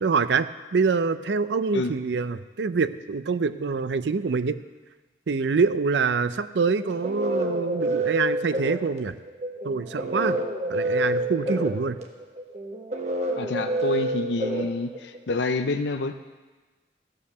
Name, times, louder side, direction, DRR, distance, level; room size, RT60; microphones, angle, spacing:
voice 1, 0.0-4.6 5.3-9.2 9.6-10.4 10.7-12.0, right 5 dB, 70° right, 13 dB, 0.5 m, -25 dB
sound 1, 6.7-15.4, right 1 dB, 40° right, 1.1 m, -28 dB
voice 2, 13.4-16.2, left 3 dB, 70° left, 8 dB, 0.5 m, -27 dB
15.0 x 5.7 x 6.6 m, 1.3 s
head